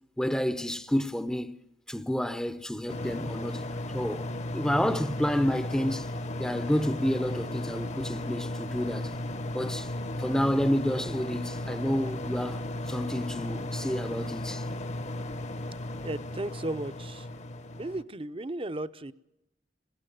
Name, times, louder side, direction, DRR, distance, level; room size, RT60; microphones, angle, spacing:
voice 1, 0.2-1.5 1.9-3.6 3.9-4.3 4.5-6.1 6.4-9.1 9.5-9.9 10.2-14.7, equal, 5° left, 0.7 m, -29 dB
sound 1, 2.9-18.0, left 1 dB, 40° left, 1.0 m, -35 dB
voice 2, 16.0-17.3 17.7-19.1, right 1 dB, 30° right, 0.7 m, -35 dB
21.5 x 17.0 x 9.2 m
head